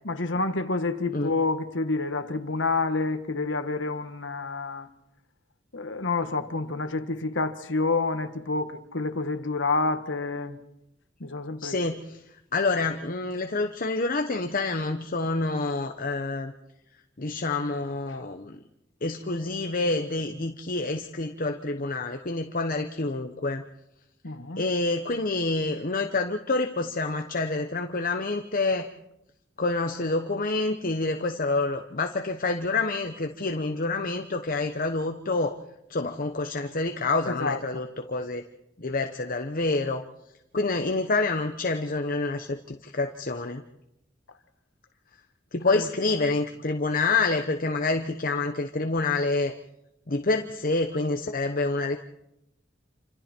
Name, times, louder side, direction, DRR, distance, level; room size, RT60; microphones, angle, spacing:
voice 1, 0.0-4.9 5.7-10.6 11.2-11.7 24.2-24.6 37.4-37.8 45.6-45.8, left 3 dB, 80° left, 1.6 m, -28 dB
voice 2, 11.6-12.2 12.5-16.5 17.2-18.6 19.0-23.6 24.6-28.9 29.6-35.6 35.9-38.4 38.8-40.0 40.5-43.6 45.5-49.5 50.1-52.0, left 3 dB, 50° left, 1.0 m, -27 dB
28.5 x 26.0 x 4.5 m
head